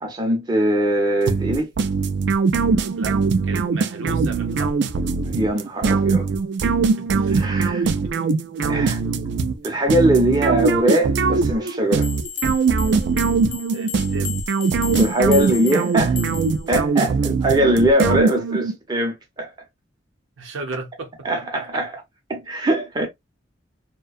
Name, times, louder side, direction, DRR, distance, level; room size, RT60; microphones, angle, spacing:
voice 1, 0.0-1.7 5.3-6.3 7.3-7.9 8.7-9.0 9.6-12.1 14.9-16.2 16.7-19.5 21.2-21.9 22.3-23.1, right 1 dB, 20° right, 0.6 m, -21 dB
sound 1, 1.3-18.8, right 4 dB, 65° right, 0.3 m, -21 dB
voice 2, 3.0-4.8 7.0-7.4 7.7-8.1 12.4-12.6 13.7-14.4 20.4-21.8, right 3 dB, 90° right, 0.7 m, -35 dB
sound 2, 12.0-16.7, left 8 dB, 40° left, 0.5 m, -34 dB
2.6 x 2.2 x 2.3 m
head